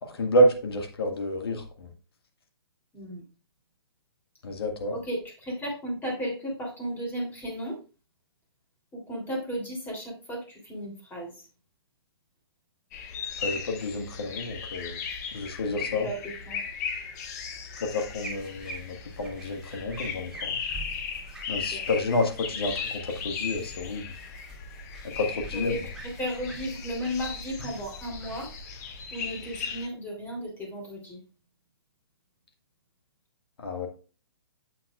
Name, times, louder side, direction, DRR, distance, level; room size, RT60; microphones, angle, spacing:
voice 1, 0.0-1.9 4.4-4.9 13.4-15.0 15.3-16.1 17.8-20.6 21.5-24.2 25.0-25.8 33.6-33.9, left 1 dB, 70° left, 3 dB, 1.9 m, -29 dB
voice 2, 2.9-3.2 4.9-7.8 8.9-11.5 15.8-16.6 21.7-21.8 25.5-25.8 26.2-28.5 29.1-31.2, equal, 15° left, -1 dB, 3.4 m, -34 dB
sound 1, 12.9-29.9, left 6 dB, 40° left, 1.3 m, -37 dB
sound 2, 17.7-29.6, right 3 dB, 5° right, 2.6 m, -46 dB
8.8 x 7.6 x 2.5 m, 0.35 s
hypercardioid pair, 130°, 13 cm